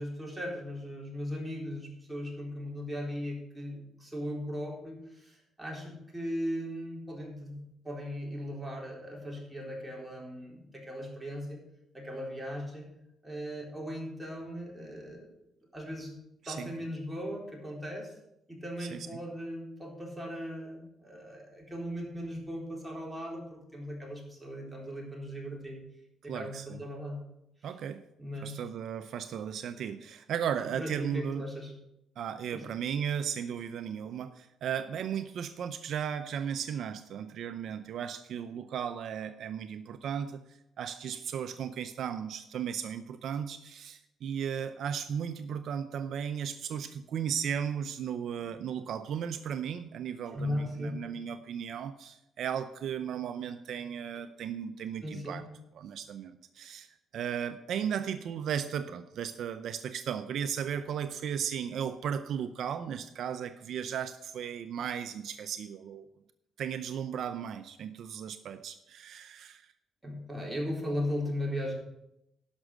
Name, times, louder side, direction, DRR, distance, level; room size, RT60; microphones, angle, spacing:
voice 1, 0.0-11.6 11.9-12.9 13.2-15.3 15.7-16.1 16.4-18.1 18.5-25.8 26.2-27.2 28.2-28.6 30.8-31.7 32.5-32.6 50.3-51.1 55.0-55.4 70.0-71.7, equal, 10° right, -2 dB, 3.8 m, -38 dB
voice 2, 26.3-26.8 27.6-28.0 28.4-31.4 32.2-40.4 40.8-55.4 55.8-56.9 57.1-66.1 66.6-69.6, right 8 dB, 70° right, 10 dB, 0.6 m, -35 dB
11.5 x 6.2 x 6.5 m, 0.83 s
cardioid pair, 90°, 0 cm